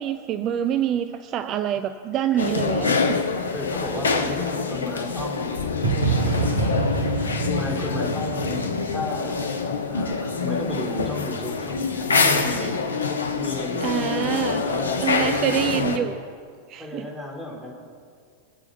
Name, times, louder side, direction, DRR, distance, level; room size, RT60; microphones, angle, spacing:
voice 1, 0.0-3.2 13.8-14.6 15.0-16.2 16.7-17.1, right 10 dB, 35° right, 10 dB, 0.6 m, -26 dB
sound 1, 2.4-16.0, left 4 dB, 70° left, 1.2 m, -25 dB
voice 2, 3.5-6.8 7.4-12.8 13.3-16.1 16.8-17.7, left 2 dB, 5° right, -2 dB, 4.1 m, -34 dB
sound 2, 5.8-9.7, right 3 dB, 70° right, 3.4 m, -26 dB
21.5 x 8.3 x 6.9 m, 2.1 s
figure-of-eight pair, 90°, 0 cm